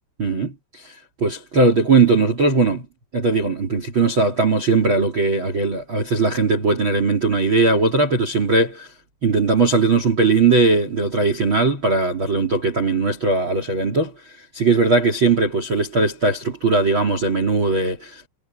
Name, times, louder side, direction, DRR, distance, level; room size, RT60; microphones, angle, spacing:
voice 1, 0.2-2.9 3.1-8.9 9.2-18.2, right 3 dB, 30° right, 2.6 m, -19 dB
omnidirectional pair, 5.8 m